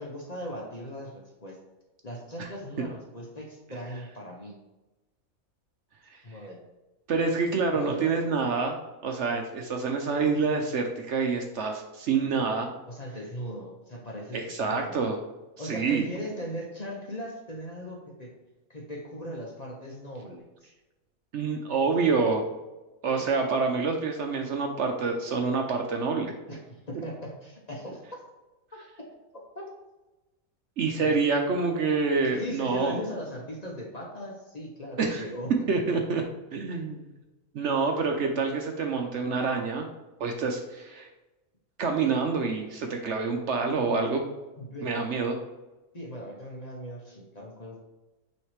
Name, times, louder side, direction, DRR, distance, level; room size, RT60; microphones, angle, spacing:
voice 1, 0.0-1.6 2.0-4.6 6.2-6.6 7.7-8.1 12.9-14.9 15.6-18.3 18.7-20.7 26.5-28.2 29.3-29.7 31.0-31.1 32.4-35.5 44.6-44.9 45.9-47.8, equal, 35° left, -2 dB, 1.0 m, -38 dB
voice 2, 7.1-8.8 9.0-12.7 14.3-15.2 15.6-16.1 21.3-22.5 23.0-26.3 30.8-33.0 35.0-35.3 35.7-36.2 36.5-37.1 37.5-39.9 40.2-41.1 41.8-44.2 44.8-45.4, right 4 dB, 60° right, 3 dB, 0.9 m, -27 dB
8.9 x 3.2 x 3.3 m, 1.1 s
omnidirectional pair, 1.5 m